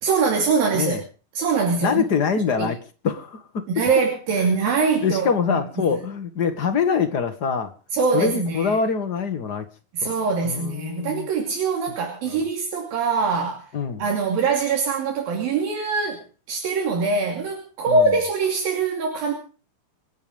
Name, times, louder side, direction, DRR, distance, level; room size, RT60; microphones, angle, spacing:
voice 1, 0.0-1.0 1.4-2.1 2.6-2.7 3.7-5.6 5.9-6.0 7.9-8.7 9.9-13.7 14.0-16.2 16.5-19.3, right 4 dB, 75° right, 1 dB, 4.6 m, -23 dB
voice 2, 1.8-2.8 3.0-3.7 4.4-4.5 5.0-7.7 8.1-9.7 10.0-10.1 10.4-11.3 12.3-12.4 13.7-14.0 17.9-18.1, left 6 dB, 50° left, 8 dB, 1.2 m, -24 dB
27.0 x 9.2 x 5.2 m, 0.38 s
omnidirectional pair, 4.1 m